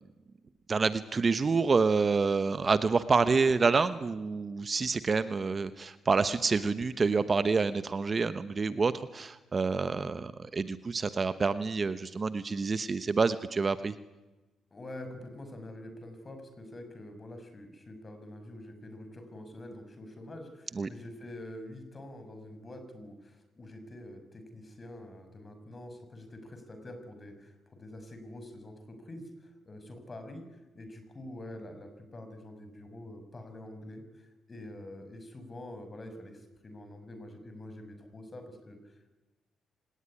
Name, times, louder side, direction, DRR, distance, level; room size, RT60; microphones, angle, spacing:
voice 1, 0.7-13.9 20.8-20.9, right 4 dB, 35° right, 12 dB, 1.0 m, -28 dB
voice 2, 14.7-39.1, left 1 dB, 30° left, 7 dB, 5.6 m, -46 dB
26.0 x 18.5 x 9.9 m, 1.1 s
cardioid pair, 90°, 0 cm